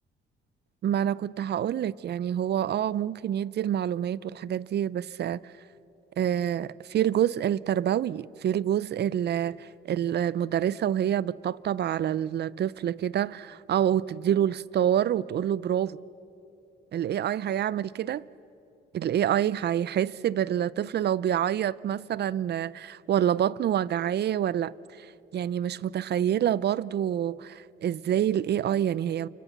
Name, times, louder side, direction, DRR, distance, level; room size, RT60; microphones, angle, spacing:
voice 1, 0.8-5.4 6.2-16.0 16.9-18.2 18.9-25.1 25.3-29.3, right 10 dB, 55° right, 0.6 m, -27 dB
29.0 x 26.5 x 7.2 m
cardioid pair, 90°, 20 cm